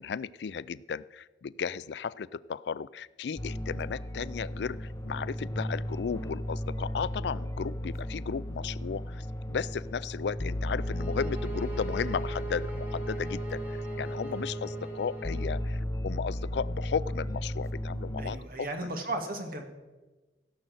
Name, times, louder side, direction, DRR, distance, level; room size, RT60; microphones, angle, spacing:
voice 1, 0.0-18.7 18.9-19.0, left 6 dB, 70° left, 19 dB, 0.4 m, -35 dB
sound 1, 3.4-18.4, equal, 20° left, 0.5 m, -35 dB
sound 2, 10.8-15.7, right 2 dB, 10° right, 2.2 m, -40 dB
voice 2, 18.2-19.7, right 2 dB, 55° right, 4 dB, 2.0 m, -35 dB
16.0 x 6.4 x 7.9 m, 1.2 s
head